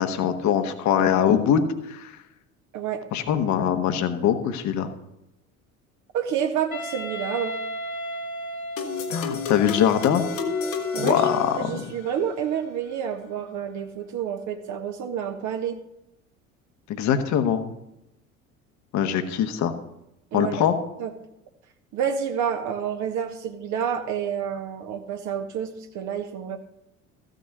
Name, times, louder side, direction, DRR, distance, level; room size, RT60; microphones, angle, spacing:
voice 1, 0.0-2.2 3.1-4.9 9.1-10.2 11.0-11.8 16.9-17.7 18.9-19.7 20.3-20.8, left 8 dB, 45° left, 8 dB, 1.4 m, -22 dB
voice 2, 6.1-7.6 10.9-11.3 11.5-15.8 20.3-20.5 21.0-21.1 21.9-26.6, right 8 dB, 45° right, 5 dB, 1.3 m, -29 dB
Wind instrument woodwind instrument, 6.7-11.7, right 1 dB, 90° left, 0.7 m, -35 dB
sound 1, 8.8-12.2, left 6 dB, 65° left, 1.5 m, -31 dB
14.5 x 6.4 x 6.7 m, 0.86 s
figure-of-eight pair, 60°, 42 cm